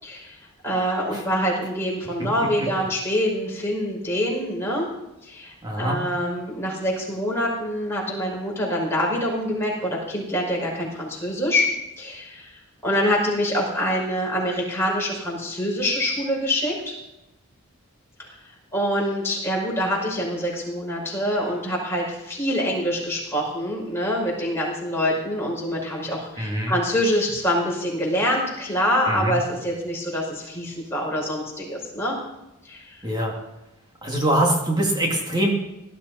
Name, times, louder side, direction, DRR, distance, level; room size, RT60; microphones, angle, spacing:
voice 1, 0.0-4.9 5.2-11.7 12.0-12.5 12.8-17.0 18.2-18.4 18.7-32.2 32.6-33.0, equal, 10° left, -4 dB, 5.4 m, -25 dB
voice 2, 5.6-6.0 26.4-26.7 29.1-29.4 33.0-33.3 34.0-35.5, right 1 dB, 20° right, 0 dB, 2.2 m, -23 dB
18.0 x 12.0 x 4.2 m, 0.90 s
head